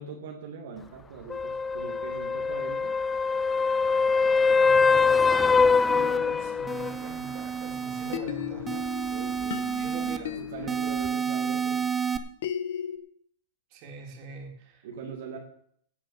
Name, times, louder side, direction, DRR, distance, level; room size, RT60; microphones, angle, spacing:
voice 1, 0.0-3.0 8.0-8.5 9.1-11.9 14.8-15.4, right 5 dB, 70° right, 0 dB, 2.5 m, -42 dB
sound 1, 1.3-7.0 11.0-11.1, left 4 dB, 15° left, 0.4 m, -23 dB
voice 2, 4.5-8.9 9.8-10.8 13.7-14.9, right 5 dB, 45° right, 1 dB, 3.6 m, -44 dB
sound 2, 5.1-6.2 6.7-8.2 8.7-10.2 10.7-12.2, right 7 dB, 15° right, 0.9 m, -31 dB
sound 3, 5.9-7.7 8.1-13.0, left 10 dB, 70° left, 1.3 m, -38 dB
16.5 x 5.6 x 7.3 m, 0.66 s
hypercardioid pair, 140°, 0 cm